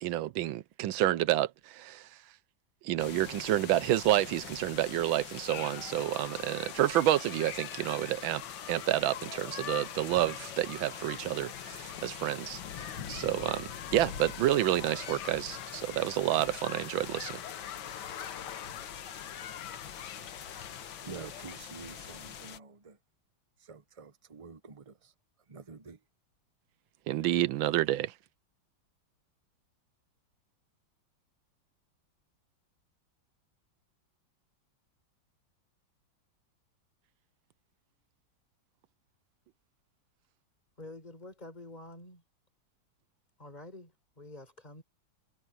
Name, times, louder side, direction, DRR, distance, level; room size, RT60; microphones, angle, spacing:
voice 1, 0.0-2.1 2.8-8.4 8.7-17.4 27.1-28.1, right 14 dB, 85° right, 1.5 m, -29 dB
sound 1, 3.0-22.6, left 8 dB, 80° left, 2.0 m, -44 dB
sound 2, 5.5-21.6, left 10 dB, 65° left, 1.5 m, -45 dB
voice 2, 21.0-23.0 23.6-25.1 25.5-26.0, right 5 dB, 35° right, 0.5 m, -48 dB
voice 3, 40.8-42.2 43.4-44.8, left 2 dB, 20° left, 4.7 m, -48 dB
omnidirectional pair, 2.1 m